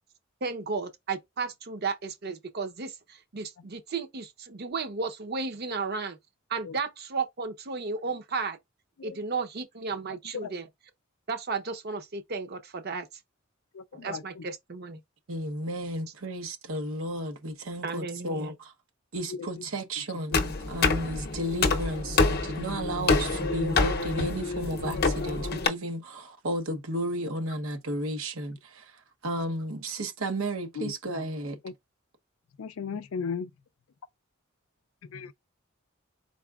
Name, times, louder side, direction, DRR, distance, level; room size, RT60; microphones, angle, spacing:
voice 1, 0.4-6.2 6.5-8.6 9.0-10.7 11.3-13.1 13.9-15.0 17.8-18.6, right 4 dB, 50° right, 0.7 m, -34 dB
voice 2, 13.7-14.4 19.3-19.5 20.3-20.4 30.8-30.9 31.6-31.7 32.6-33.5 35.1-35.3, left 5 dB, 90° left, 0.4 m, -36 dB
voice 3, 15.3-18.5 19.1-28.6 29.2-31.6, right 1 dB, 90° right, 1.0 m, -33 dB
sound 1, 20.3-25.7, left 3 dB, 50° left, 0.6 m, -27 dB
4.8 x 4.0 x 2.3 m
head